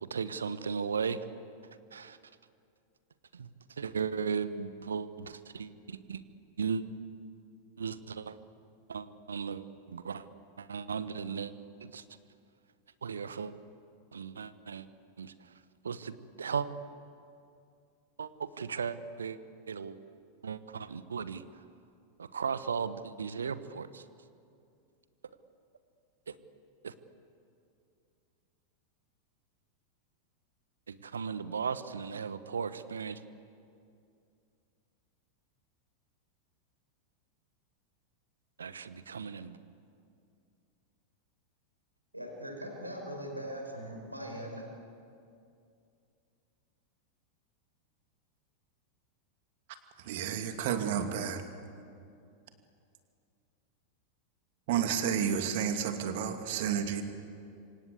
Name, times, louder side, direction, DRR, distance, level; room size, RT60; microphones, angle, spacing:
voice 1, 0.0-1.2 1.9-2.2 3.3-3.5 3.8-6.2 6.6-6.8 7.8-8.4 8.9-10.3 10.6-11.5 11.8-12.0 13.0-13.5 14.1-14.9 15.2-15.3 15.8-16.7 18.2-18.3 18.6-19.4 19.7-20.0 20.4-21.4 22.2-24.0 26.3-26.4 26.8-26.9 30.9-33.2 38.6-39.6, right 6 dB, 70° right, 14 dB, 1.1 m, -36 dB
voice 2, 42.1-44.7, equal, 85° right, 2 dB, 5.6 m, -40 dB
voice 3, 50.0-51.4 54.7-57.0, right 8 dB, 50° right, 7 dB, 2.5 m, -31 dB
27.0 x 25.5 x 8.3 m, 2.4 s
figure-of-eight pair, 90°, 0 cm